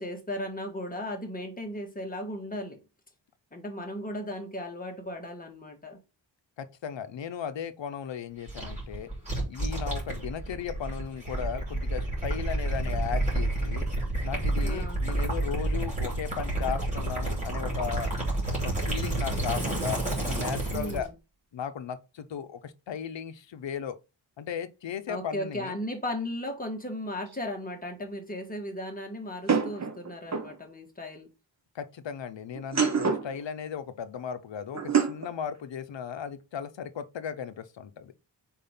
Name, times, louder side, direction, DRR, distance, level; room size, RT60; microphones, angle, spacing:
voice 1, 0.0-2.8 3.5-6.0 14.6-15.0 20.7-21.1 25.1-31.3, left 1 dB, 20° left, 1.5 m, -36 dB
voice 2, 6.6-9.1 9.5-13.9 14.2-18.1 18.5-20.0 20.3-21.1 21.5-24.0 24.4-25.8 31.7-38.1, left 8 dB, 70° left, 0.7 m, -36 dB
Gurgling / Liquid, 8.5-21.1, right 2 dB, 15° right, 2.6 m, -30 dB
sound 1, 27.3-27.4 29.5-30.6 32.6-33.4 34.7-35.3, right 6 dB, 35° right, 0.8 m, -26 dB
4.6 x 3.6 x 5.6 m
wide cardioid pair, 150°, 45 cm